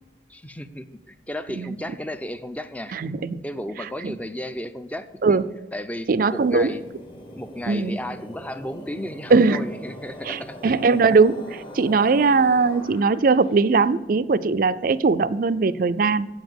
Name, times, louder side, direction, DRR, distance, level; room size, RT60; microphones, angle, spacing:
voice 1, 0.3-5.4 5.7-6.8 7.3-10.8, left 1 dB, 10° left, 11 dB, 0.5 m, -34 dB
voice 2, 2.9-3.4 4.0-4.2 5.2-5.5 6.1-6.7 7.7-8.0 9.3-9.7 10.2-16.3, right 4 dB, 50° right, 14 dB, 0.4 m, -20 dB
sound 1, 6.2-13.6, equal, 30° left, 1.2 m, -42 dB
8.4 x 7.1 x 7.9 m, 1.1 s
head